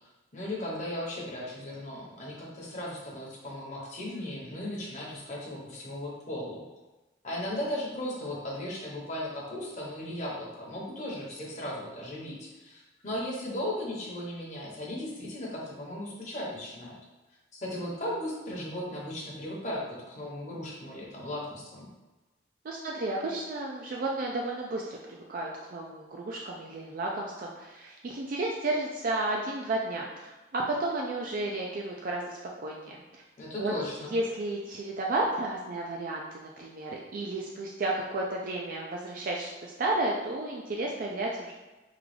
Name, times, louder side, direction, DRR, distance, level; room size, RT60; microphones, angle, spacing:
voice 1, 0.3-6.6 7.2-17.0 17.5-21.9 33.4-34.1, left 1 dB, 40° left, -4 dB, 0.9 m, -36 dB
voice 2, 22.6-33.0 33.6-33.7 34.1-41.5, right 2 dB, 50° right, -2 dB, 0.3 m, -32 dB
3.7 x 2.3 x 3.2 m, 1.1 s
head